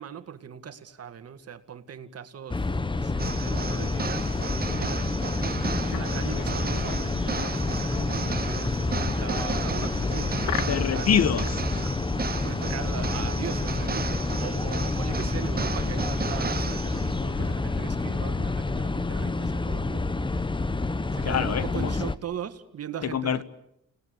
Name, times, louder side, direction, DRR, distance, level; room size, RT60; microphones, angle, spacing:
voice 1, 0.0-5.3 5.8-11.1 12.4-20.5 21.1-23.4, right 8 dB, 55° right, 2.1 m, -40 dB
sound 1, 2.5-22.2, left 3 dB, 15° left, 1.1 m, -28 dB
sound 2, 3.2-17.3, right 6 dB, 30° right, 1.1 m, -35 dB
sound 3, 4.6-10.9 11.3-11.8 14.5-14.6 14.8-15.2 16.3-16.4 16.9-18.6, left 12 dB, 85° left, 1.3 m, -41 dB
voice 2, 10.7-11.9 21.2-21.9 23.0-23.4, left 8 dB, 55° left, 1.6 m, -26 dB
29.5 x 19.5 x 9.9 m
cardioid pair, 90°, 30 cm